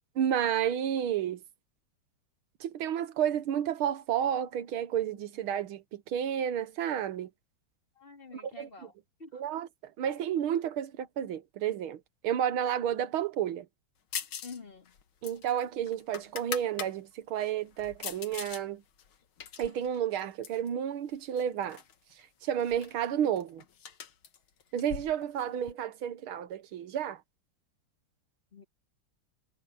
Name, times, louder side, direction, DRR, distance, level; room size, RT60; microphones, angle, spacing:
voice 1, 0.2-1.4 2.6-7.3 8.3-8.7 9.3-9.7 10.0-13.7 15.2-18.8 19.6-21.8 22.4-23.6 24.7-27.2, right 9 dB, 85° right, 1.9 m, -31 dB
voice 2, 7.9-8.9 9.2-9.4 14.4-15.0 28.5-28.6, left 4 dB, 25° left, 3.1 m, -47 dB
sound 1, 14.1-14.6 14.9-16.9 17.4-18.6 19.0-20.7 21.4-21.9 22.2-22.3 22.6-25.7, left 8 dB, 80° left, 2.2 m, -42 dB
omnidirectional pair, 2.2 m